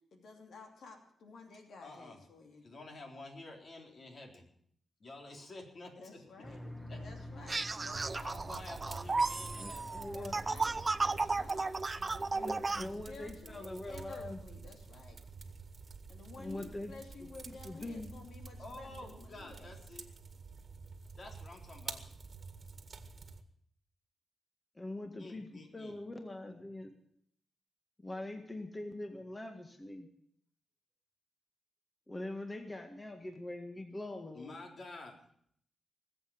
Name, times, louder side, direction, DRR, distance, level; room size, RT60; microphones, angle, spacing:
voice 1, 0.1-2.7 6.0-6.6 7.0-8.4 10.1-10.8 11.0-11.7 12.0-15.2 16.1-19.8, left 4 dB, 80° left, 3 dB, 2.7 m, -53 dB
voice 2, 1.8-2.2 2.6-4.5 5.0-6.5 6.9-7.0 8.2-10.0 11.5-11.7 18.6-20.1 21.2-22.0 25.2-26.0 34.3-35.2, left 2 dB, 55° left, 1 dB, 3.9 m, -50 dB
sound 1, 6.4-11.5, equal, ahead, 1.4 m, -49 dB
sound 2, 7.5-12.9, right 3 dB, 30° right, 0.5 m, -34 dB
sound 3, 7.9-23.4, right 4 dB, 50° right, 1.7 m, -49 dB
voice 3, 9.5-10.4 12.3-14.4 16.4-16.9 17.2-17.3 17.6-18.1 24.7-26.9 28.0-30.1 32.1-34.6, left 2 dB, 20° left, 5 dB, 1.8 m, -43 dB
19.5 x 8.1 x 8.7 m, 0.66 s
cardioid pair, 85°, 0 cm